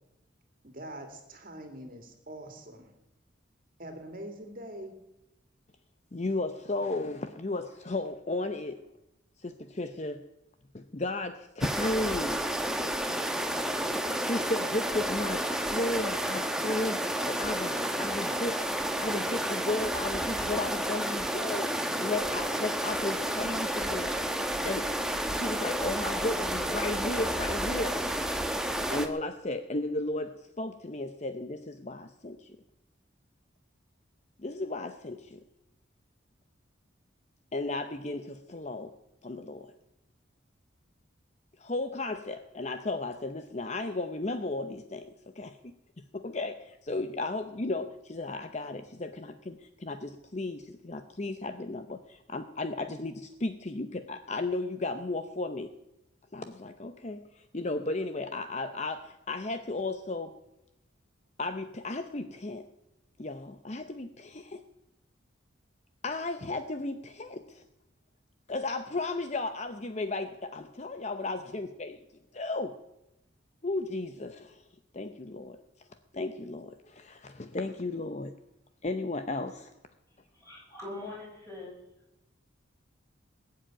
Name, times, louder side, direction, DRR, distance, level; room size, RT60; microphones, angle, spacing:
voice 1, 0.6-2.9 3.8-5.0, right 1 dB, 45° right, 4 dB, 2.4 m, -43 dB
voice 2, 6.1-8.8 9.4-10.2 10.7-12.4 14.2-18.6 19.0-21.7 22.0-24.1 24.6-25.0 25.3-28.0 28.9-32.5 34.4-35.4 37.5-39.0 39.2-39.7 41.6-45.6 46.1-55.7 56.3-60.3 61.4-62.7 63.2-64.6 66.0-67.6 68.5-72.0 72.3-72.7 73.6-74.6 74.9-75.9 76.1-78.3 78.8-79.7, left 2 dB, 35° left, 9 dB, 0.7 m, -34 dB
sound 1, 11.6-29.1, right 1 dB, 5° right, 1.0 m, -31 dB
voice 3, 80.1-81.7, left 2 dB, 15° left, -2 dB, 5.8 m, -43 dB
20.0 x 7.6 x 9.0 m, 0.89 s
head